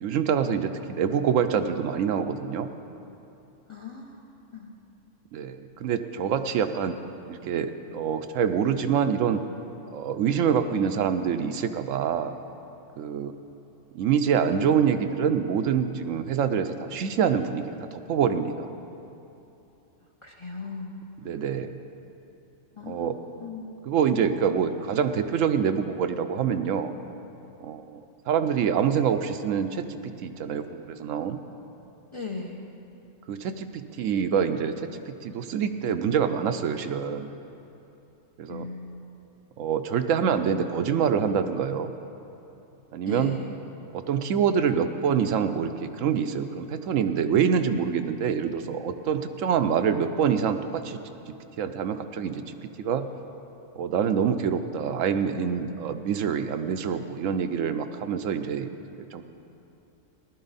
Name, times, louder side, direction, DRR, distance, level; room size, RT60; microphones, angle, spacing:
voice 1, 0.0-2.7 5.3-7.0 7.3-9.4 9.9-12.4 13.0-13.3 13.9-18.7 21.2-21.7 22.9-23.2 23.9-26.9 27.6-28.0 28.3-31.4 33.3-37.3 38.4-38.7 39.6-41.9 42.9-43.4 43.9-51.0 51.3-53.1 53.8-58.7 59.1-59.2, right 7 dB, 75° right, 9 dB, 0.9 m, -26 dB
voice 2, 3.7-4.7 20.2-21.0 22.7-23.8 32.1-32.7 38.5-39.2 43.1-43.5, left 3 dB, 30° left, 0 dB, 0.6 m, -38 dB
15.0 x 11.5 x 4.0 m, 2.9 s
omnidirectional pair, 1.4 m